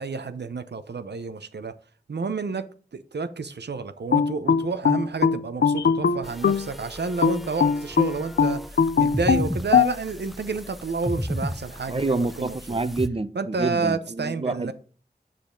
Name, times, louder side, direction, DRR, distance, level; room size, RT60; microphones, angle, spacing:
voice 1, 0.0-1.7 2.1-2.7 2.9-12.8 13.3-14.7, right 4 dB, 90° right, 0.8 m, -30 dB
sound 1, 4.1-6.7 7.2-9.9, left 6 dB, 80° left, 0.5 m, -20 dB
sound 2, 6.2-13.1, equal, ahead, 0.7 m, -35 dB
voice 2, 11.9-14.7, right 3 dB, 35° right, 0.8 m, -27 dB
7.6 x 6.8 x 3.9 m
wide cardioid pair, 40°, 17 cm